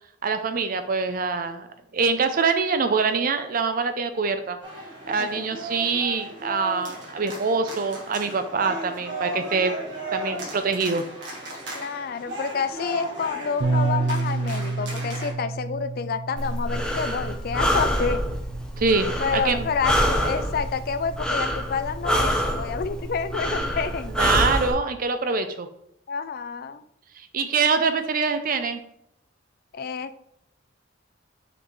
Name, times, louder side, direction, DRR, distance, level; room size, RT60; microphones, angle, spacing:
voice 1, 0.2-1.7 1.9-4.6 5.1-9.7 10.1-11.0 18.8-19.1 19.4-19.7 24.2-25.7 27.3-28.8, right 4 dB, 45° right, 9 dB, 0.5 m, -24 dB
sound 1, 4.6-15.3, right 1 dB, 60° right, 1.5 m, -35 dB
voice 2, 5.2-5.5 11.8-18.2 19.2-24.2 26.1-26.8 29.7-30.3, left 5 dB, 50° left, 12 dB, 0.4 m, -29 dB
Bass guitar, 13.6-19.8, right 3 dB, 80° right, 0.7 m, -30 dB
Breathing, 16.4-24.7, equal, 5° left, 0.8 m, -26 dB
6.0 x 5.1 x 3.1 m, 0.74 s
head